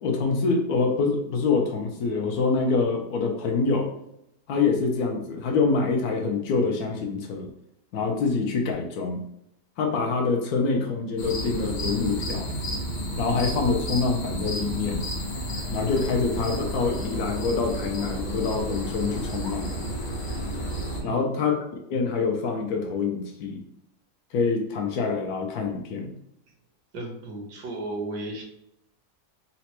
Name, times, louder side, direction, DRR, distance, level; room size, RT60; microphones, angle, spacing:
voice 1, 0.0-3.9 4.5-7.5 7.9-9.3 9.8-12.5 13.2-15.1 15.7-19.7 21.0-23.6 24.3-26.1, left 4 dB, 70° left, 2 dB, 1.0 m, -25 dB
sound 1, 11.2-21.0, equal, 90° left, 0.4 m, -31 dB
voice 2, 21.0-21.3 26.9-28.4, right 2 dB, 80° right, 1 dB, 1.4 m, -34 dB
4.0 x 2.1 x 2.9 m, 0.78 s
omnidirectional pair, 1.8 m